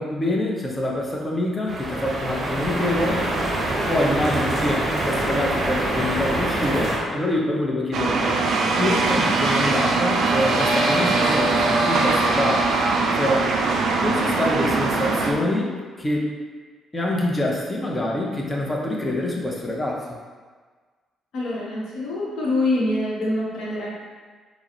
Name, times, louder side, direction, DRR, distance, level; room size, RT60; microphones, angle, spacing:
voice 1, 0.0-3.2 3.9-8.4 8.8-12.7 13.1-13.5 14.0-15.7 16.0-16.3 16.9-20.2, left 1 dB, 20° left, -2 dB, 0.6 m, -25 dB
sound 1, 1.7-7.0, right 1 dB, 30° right, 0.7 m, -25 dB
sound 2, 7.9-15.3, right 3 dB, 55° right, 0.3 m, -21 dB
voice 2, 21.3-23.9, left 2 dB, 60° left, -5 dB, 0.8 m, -25 dB
3.9 x 2.0 x 2.8 m, 1.5 s
figure-of-eight pair, 45°, 0 cm